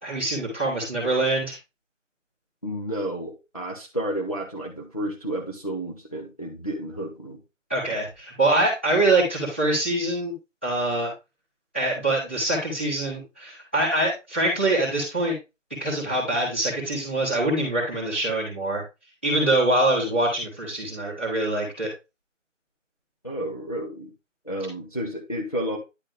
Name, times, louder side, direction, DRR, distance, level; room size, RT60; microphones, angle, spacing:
voice 1, 0.0-1.6 7.7-10.3 10.6-11.1 11.7-15.3 15.8-18.8 19.2-21.9, right 2 dB, 10° right, -8 dB, 1.4 m, -24 dB
voice 2, 2.6-7.4 23.2-24.1 24.4-25.8, right 1 dB, 30° left, 0 dB, 0.8 m, -31 dB
9.9 x 3.9 x 3.3 m, 0.26 s
figure-of-eight pair, 170°, 38 cm